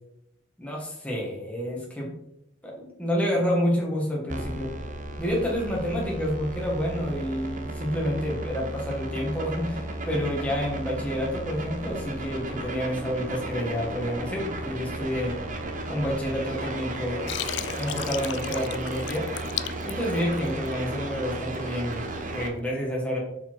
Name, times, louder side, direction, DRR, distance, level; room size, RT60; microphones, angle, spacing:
voice 1, 0.6-2.1 2.6-4.7 5.2-15.4 15.9-17.3 17.7-19.3 19.8-23.2, equal, 5° left, -3 dB, 2.0 m, -29 dB
sound 1, 4.3-22.5, right 2 dB, 45° right, 1.1 m, -34 dB
Water, 17.3-20.7, left 11 dB, 70° left, 0.4 m, -34 dB
6.8 x 5.3 x 4.6 m, 0.83 s
head